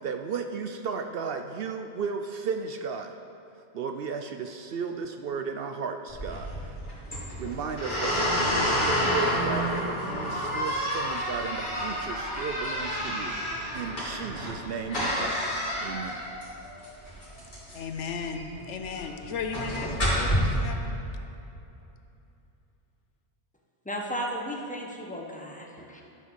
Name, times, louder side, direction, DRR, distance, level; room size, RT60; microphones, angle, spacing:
voice 1, 0.0-3.1 3.7-6.8 7.4-15.4 15.8-16.2, right 5 dB, 65° right, 6 dB, 0.7 m, -35 dB
sound 1, 6.1-20.3, equal, 45° left, 3.2 m, -29 dB
voice 2, 17.7-21.0, left 5 dB, 80° left, 5 dB, 1.1 m, -35 dB
voice 3, 23.8-26.0, equal, 5° left, -1 dB, 1.0 m, -35 dB
12.0 x 5.8 x 6.3 m, 2.8 s
omnidirectional pair, 1.2 m